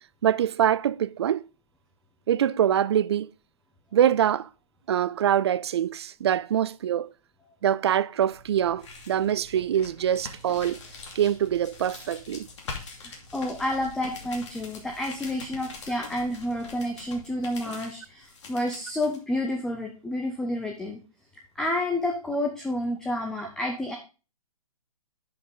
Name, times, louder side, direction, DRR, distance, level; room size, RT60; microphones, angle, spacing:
voice 1, 0.2-1.5 2.3-3.3 3.9-4.5 4.9-7.1 7.6-10.8 11.2-12.5, right 10 dB, 45° right, 0.4 m, -24 dB
sound 1, 8.3-19.2, left 4 dB, 50° left, 2.6 m, -44 dB
voice 2, 13.0-21.0 21.6-23.9, left 1 dB, 5° left, 0.6 m, -30 dB
10.5 x 5.7 x 3.7 m
hypercardioid pair, 150°, 19 cm